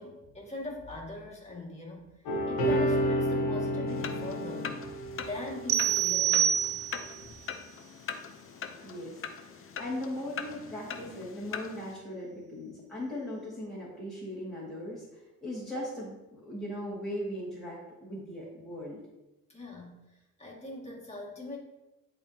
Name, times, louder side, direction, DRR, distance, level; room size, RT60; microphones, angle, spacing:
voice 1, 0.0-2.0 2.5-4.8 5.3-6.6 19.5-21.6, left 2 dB, 20° left, -3 dB, 2.1 m, -41 dB
sound 1, 2.3-6.4 7.2-7.3, equal, 85° left, 1.2 m, -30 dB
sound 2, 3.9-11.9, left 6 dB, 40° left, 0.6 m, -42 dB
sound 3, 5.7-7.2, right 10 dB, 45° right, 0.4 m, -26 dB
voice 2, 8.8-19.0, left 1 dB, ahead, -9 dB, 2.2 m, -39 dB
10.5 x 3.7 x 2.8 m, 1.0 s
cardioid pair, 90°, 34 cm